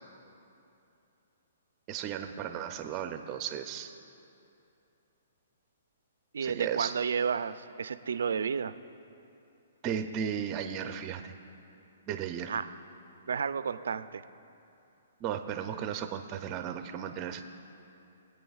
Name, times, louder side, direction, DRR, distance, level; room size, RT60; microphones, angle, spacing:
voice 1, 1.9-3.9 6.4-6.9 9.8-11.3 12.1-12.6 15.2-17.4, right 8 dB, 25° right, 6 dB, 0.5 m, -35 dB
voice 2, 6.3-8.7 12.5-12.8 13.3-14.2, right 6 dB, 80° right, 13 dB, 0.4 m, -31 dB
23.5 x 8.6 x 2.4 m, 2.8 s
hypercardioid pair, 155°, 0 cm